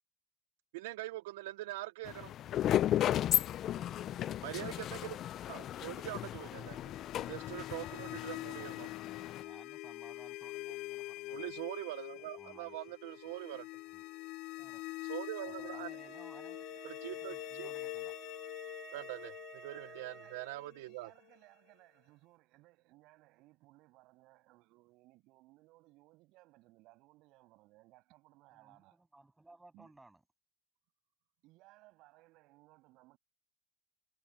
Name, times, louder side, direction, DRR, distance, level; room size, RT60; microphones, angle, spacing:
voice 1, 0.7-2.3 4.4-8.9 11.3-13.7 15.0-15.9 16.8-17.7 18.9-21.1, right 19 dB, 85° right, 0.5 m, -43 dB
sound 1, 2.1-9.4, left 12 dB, 50° left, 0.4 m, -35 dB
voice 2, 3.7-4.4 7.3-7.4 9.1-11.6 12.2-12.8 13.9-14.0 14.6-14.8 15.4-18.1 28.5-30.2, right 2 dB, 10° right, 7.9 m, -60 dB
sound 2, 6.4-21.3, left 20 dB, 65° left, 0.8 m, -45 dB
Wind instrument woodwind instrument, 15.3-20.6, right 8 dB, 35° right, 4.3 m, -53 dB
voice 3, 19.7-29.0 29.7-29.9 31.4-33.2, right 20 dB, 65° right, 7.3 m, -63 dB
supercardioid pair, 110°, 0 cm